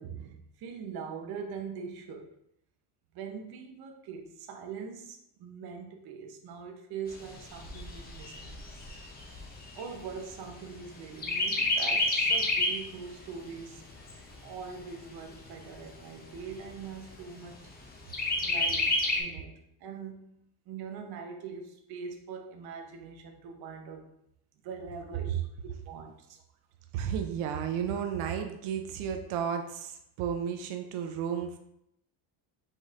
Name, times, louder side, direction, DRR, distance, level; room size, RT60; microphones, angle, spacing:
voice 1, 0.0-2.3 3.1-8.5 9.7-13.8 14.4-17.7 18.4-20.4 20.7-24.1 24.6-26.4, right 6 dB, 50° right, 3 dB, 0.7 m, -42 dB
Chirp tweet, 7.1-10.8 11.2-12.9 13.3-13.4 13.8-14.8 15.4-15.5 15.8-15.9 16.3-16.9 18.1-19.2, left 2 dB, 20° left, 0.5 m, -29 dB
voice 2, 26.9-31.6, right 8 dB, 85° right, 5 dB, 0.7 m, -33 dB
5.2 x 4.1 x 2.5 m, 0.76 s
cardioid pair, 165°, 48 cm